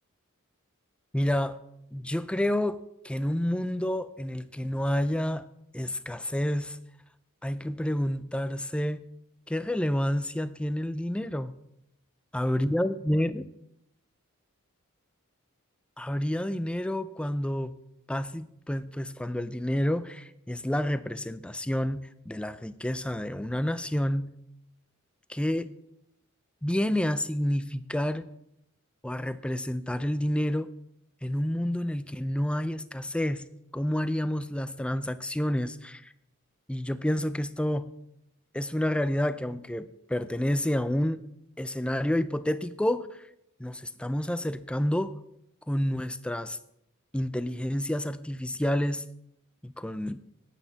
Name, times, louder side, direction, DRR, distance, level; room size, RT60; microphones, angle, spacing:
voice 1, 1.1-1.6 1.9-5.4 5.7-6.8 7.4-9.0 9.5-11.5 12.3-13.4 16.0-17.8 18.1-24.3 25.3-25.7 26.6-28.3 29.0-30.7 31.2-33.4 33.7-36.1 36.7-37.9 38.5-41.2 41.6-43.2 43.6-45.2 45.7-46.6 47.1-49.0 49.6-50.2, left 1 dB, 5° left, 14 dB, 0.4 m, -29 dB
11.5 x 9.3 x 4.0 m, 0.79 s
head